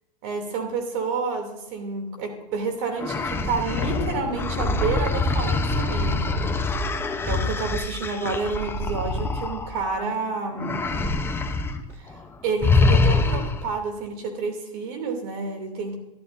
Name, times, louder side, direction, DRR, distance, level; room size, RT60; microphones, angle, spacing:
voice 1, 0.2-6.6 7.2-10.8 11.9-16.0, right 4 dB, 55° right, 5 dB, 2.8 m, -30 dB
sound 1, 3.0-10.1 10.6-11.8 12.1-12.3 12.6-13.7, left 3 dB, 10° left, 0.7 m, -24 dB
sound 2, 3.7-6.0, left 7 dB, 75° left, 0.9 m, -34 dB
12.0 x 12.0 x 2.6 m, 1.0 s
hypercardioid pair, 120°, 21 cm